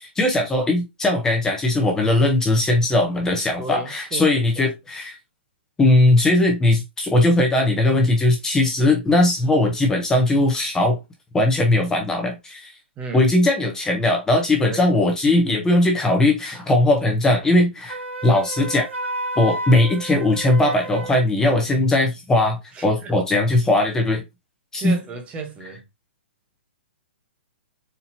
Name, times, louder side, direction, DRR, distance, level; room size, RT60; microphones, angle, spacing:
voice 1, 0.0-5.2 5.8-11.0 11.3-12.7 13.1-18.9 19.4-24.2 24.7-25.0, left 2 dB, 10° left, 0.8 m, -19 dB
voice 2, 3.6-4.6 13.0-13.3 14.7-14.8 22.7-23.1 24.7-25.8, right 3 dB, 20° right, 0.8 m, -34 dB
Wind instrument woodwind instrument, 17.9-21.3, right 2 dB, 90° right, 1.2 m, -31 dB
4.4 x 2.7 x 2.7 m
hypercardioid pair, 145°, 6 cm